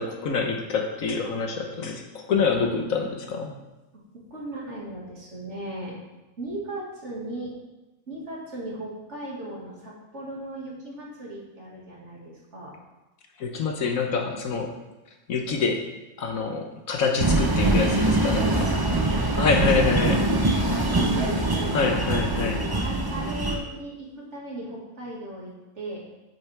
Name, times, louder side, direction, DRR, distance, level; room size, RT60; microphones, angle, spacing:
voice 1, 0.0-3.5 13.4-14.7 15.3-15.8 16.2-18.7 19.4-20.2 21.7-22.6, left 5 dB, 65° left, 3 dB, 1.3 m, -26 dB
voice 2, 3.9-6.0 6.4-7.5 8.1-12.7 18.5-19.0 19.4-19.5 19.7-20.1 20.5-21.7 22.7-26.0, right 1 dB, 50° right, -4 dB, 2.4 m, -37 dB
sound 1, 17.2-23.6, right 2 dB, 20° right, 0.6 m, -23 dB
8.7 x 8.6 x 3.5 m, 1.0 s
omnidirectional pair, 1.6 m